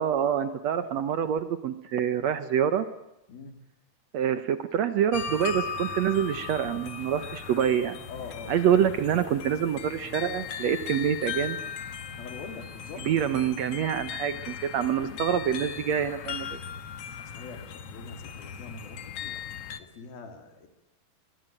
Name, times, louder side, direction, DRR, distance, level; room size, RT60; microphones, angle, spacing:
voice 1, 0.0-2.9 4.1-8.0 8.5-11.6 13.1-16.6, right 9 dB, 70° right, 11 dB, 1.7 m, -26 dB
sound 1, 5.1-19.8, left 7 dB, 60° left, 1.8 m, -38 dB
voice 2, 8.1-8.6 12.2-13.1 17.2-19.4 19.8-20.7, left 4 dB, 75° left, 6 dB, 4.8 m, -43 dB
24.5 x 22.0 x 9.0 m, 0.93 s
omnidirectional pair, 4.3 m